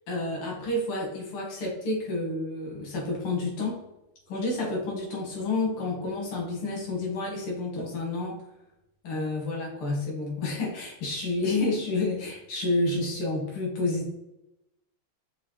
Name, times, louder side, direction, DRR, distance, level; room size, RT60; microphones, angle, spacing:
voice 1, 0.1-3.8 4.3-8.4 9.0-14.1, left 2 dB, 90° left, -2 dB, 2.4 m, -29 dB
5.9 x 2.8 x 3.1 m, 0.89 s
omnidirectional pair, 2.3 m